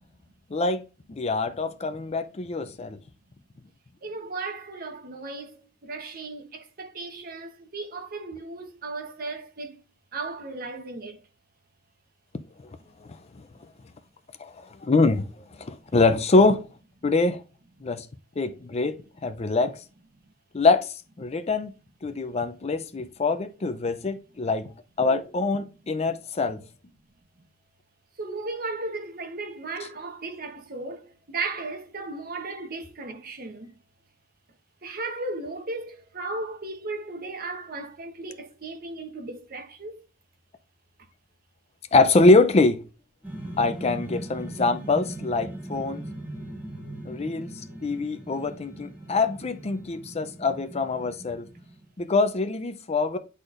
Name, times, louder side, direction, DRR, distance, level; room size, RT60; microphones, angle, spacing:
voice 1, 0.5-0.8 1.1-3.0 14.4-14.5 14.8-15.3 15.6-16.6 17.0-17.4 17.8-18.1 18.4-19.8 20.5-21.7 22.0-24.7 25.0-26.6 41.9-42.8 43.6-46.0 47.0-47.5 47.8-51.5 52.0-53.2, left 3 dB, 35° left, 0.5 m, -24 dB
voice 2, 4.0-9.8 10.1-11.2 27.4-27.5 28.2-33.8 34.8-40.0, right 3 dB, 50° right, 1.0 m, -36 dB
sound 1, 43.2-51.9, right 1 dB, 10° right, 2.3 m, -39 dB
9.5 x 4.2 x 2.5 m
head